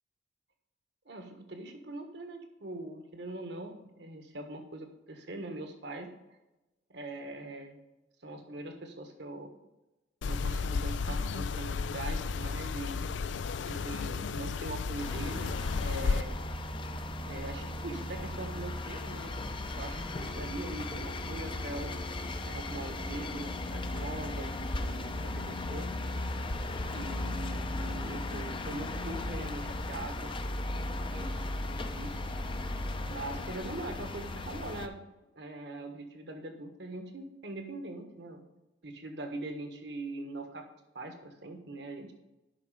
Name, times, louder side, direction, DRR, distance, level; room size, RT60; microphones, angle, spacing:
voice 1, 1.0-6.1 6.9-7.8 8.2-9.5 10.3-13.0 13.6-16.4 17.2-22.0 22.4-25.9 26.9-30.3 30.7-31.3 31.7-32.2 33.0-35.0 35.3-38.4 38.8-40.6 40.9-42.1, right 2 dB, 70° right, 5 dB, 1.5 m, -42 dB
sound 1, 10.2-16.2, left 4 dB, 80° left, 0.4 m, -33 dB
sound 2, 15.0-34.9, left 2 dB, 30° left, 0.7 m, -36 dB
10.5 x 5.6 x 5.0 m, 1.0 s
head